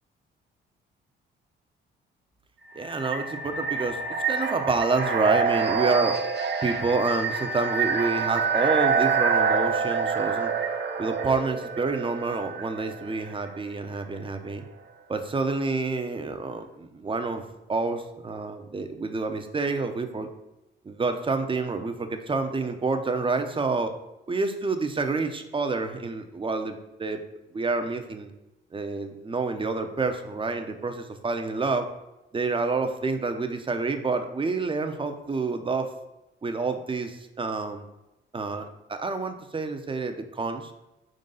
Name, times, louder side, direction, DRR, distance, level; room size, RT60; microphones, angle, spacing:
voice 1, 2.7-4.0 4.3-6.2 6.6-10.5 11.0-14.6 15.1-17.4 17.7-20.3 20.8-23.9 24.3-27.2 27.5-28.3 28.7-31.9 32.3-35.9 36.4-37.8 38.3-40.7, right 3 dB, 25° right, 6 dB, 0.7 m, -28 dB
sound 1, 2.7-13.5, right 5 dB, 60° right, 0.7 m, -27 dB
4.4 x 3.9 x 5.5 m, 0.95 s
cardioid pair, 90°, 20 cm